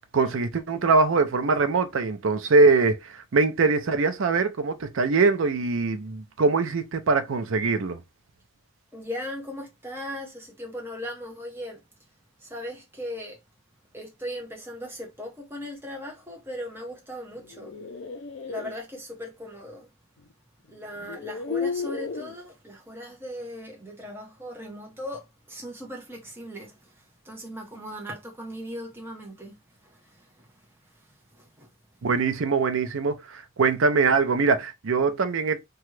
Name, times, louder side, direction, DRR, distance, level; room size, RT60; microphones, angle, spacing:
voice 1, 0.1-8.0 32.0-35.6, right 4 dB, 65° right, 0.5 m, -22 dB
voice 2, 8.9-13.4 13.9-17.8 18.4-19.9 20.6-32.1, equal, 10° right, 0.7 m, -39 dB
sound 1, 17.4-18.7 20.2-20.3 21.0-22.3, left 4 dB, 55° left, 0.4 m, -33 dB
2.9 x 2.3 x 3.1 m
head